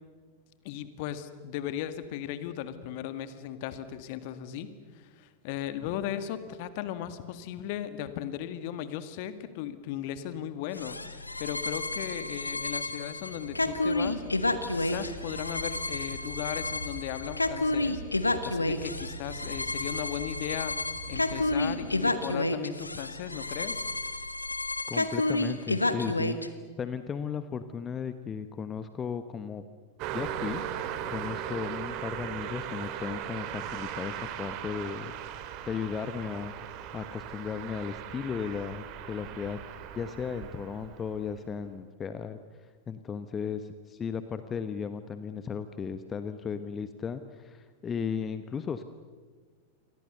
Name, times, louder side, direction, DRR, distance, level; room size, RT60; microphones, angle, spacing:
voice 1, 0.6-14.2 14.7-20.8 21.1-23.8, left 11 dB, 45° left, 11 dB, 1.9 m, -37 dB
sound 1, 10.7-26.5, left 2 dB, 80° left, 1.5 m, -30 dB
sound 2, 13.3-21.9, right 2 dB, 70° right, 5.9 m, -45 dB
voice 2, 24.9-26.4 26.8-29.6 30.1-30.6 31.1-35.1 35.4-36.5 36.9-39.6 39.9-42.4 42.9-48.8, left 6 dB, 20° left, 11 dB, 1.1 m, -35 dB
Car passing by, 30.0-41.4, right 10 dB, 40° right, 2.3 m, -38 dB
29.0 x 23.5 x 6.7 m, 1.5 s
figure-of-eight pair, 90°, 0 cm